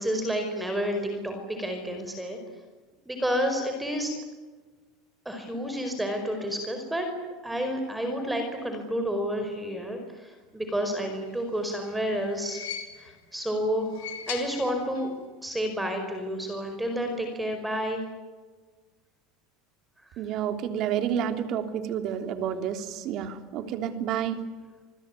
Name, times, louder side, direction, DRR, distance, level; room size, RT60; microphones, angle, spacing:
voice 1, 0.0-2.4 3.0-4.1 5.2-7.1 7.4-12.6 13.0-13.9 14.3-15.1 15.4-18.0, equal, 5° right, 5 dB, 5.0 m, -30 dB
sound 1, 11.4-13.3 13.8-15.2 15.5-15.6 16.7-16.8, left 9 dB, 90° left, 4.3 m, -41 dB
voice 2, 20.2-24.4, right 9 dB, 50° right, 8 dB, 3.3 m, -30 dB
27.0 x 20.5 x 9.7 m, 1.3 s
supercardioid pair, 135°, 0 cm